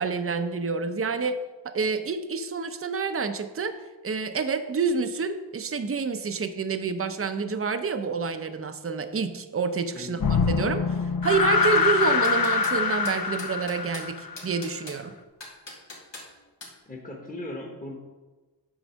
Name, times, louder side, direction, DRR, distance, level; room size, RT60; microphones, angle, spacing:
voice 1, 0.0-1.4 1.6-3.8 4.0-10.8 11.2-15.1, right 5 dB, 30° right, 9 dB, 0.6 m, -28 dB
sound 1, 10.2-14.6, left 5 dB, 55° left, 0.7 m, -24 dB
sound 2, 11.8-12.8 13.1-14.1 14.4-15.0 15.4-16.3 16.6-16.8, left 2 dB, 85° left, 2.1 m, -41 dB
voice 2, 16.9-18.0, left 1 dB, 20° left, -1 dB, 1.2 m, -38 dB
8.7 x 4.0 x 6.3 m, 1.2 s
wide cardioid pair, 60°, 43 cm